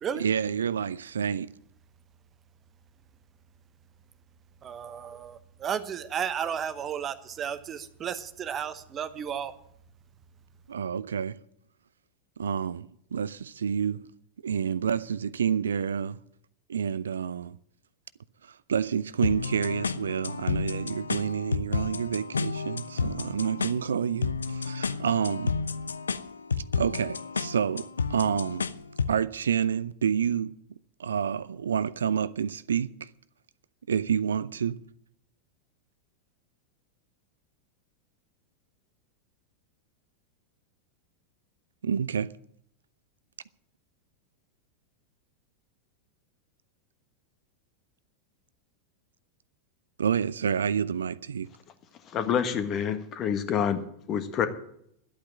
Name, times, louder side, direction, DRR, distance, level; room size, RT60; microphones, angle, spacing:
voice 1, 0.1-1.5 10.7-11.4 12.4-14.0 14.4-16.2 16.7-17.6 18.4-25.5 26.8-28.7 29.1-30.5 31.0-33.1 33.9-34.8 41.8-42.3 50.0-51.5, right 7 dB, 70° right, 0.4 m, -28 dB
voice 2, 4.6-9.5, right 8 dB, 25° right, 1.0 m, -33 dB
sound 1, 19.2-29.2, left 5 dB, 75° left, 0.5 m, -31 dB
voice 3, 52.1-53.8 54.1-54.5, left 8 dB, 30° left, 1.5 m, -27 dB
11.5 x 8.6 x 8.7 m
figure-of-eight pair, 90°, 0 cm